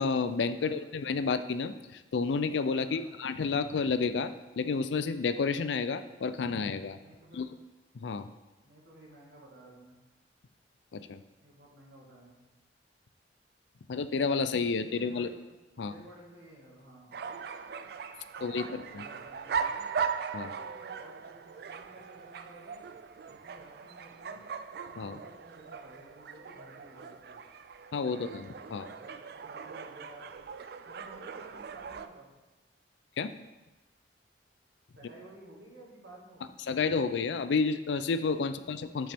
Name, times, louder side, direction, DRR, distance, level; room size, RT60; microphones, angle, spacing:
voice 1, 0.0-7.0 7.3-7.5 7.9-8.3 10.9-11.2 13.9-15.3 15.8-15.9 18.4-18.7 18.9-19.0 20.3-20.5 25.0-25.2 27.9-28.9 33.2-33.3 36.6-39.1, left 4 dB, 80° left, 11 dB, 0.4 m, -30 dB
voice 2, 0.6-0.9 2.8-3.2 7.0-7.5 8.6-10.0 11.4-12.4 14.8-17.1 18.5-19.9 20.4-22.8 23.3-24.4 25.0-27.4 28.0-28.2 29.0-30.3 30.9-32.3 35.0-36.6 38.4-38.7, right 1 dB, 85° right, -3 dB, 1.9 m, -53 dB
sound 1, 17.1-32.1, right 6 dB, 60° right, 0.3 m, -39 dB
7.6 x 7.2 x 3.5 m, 1.1 s
head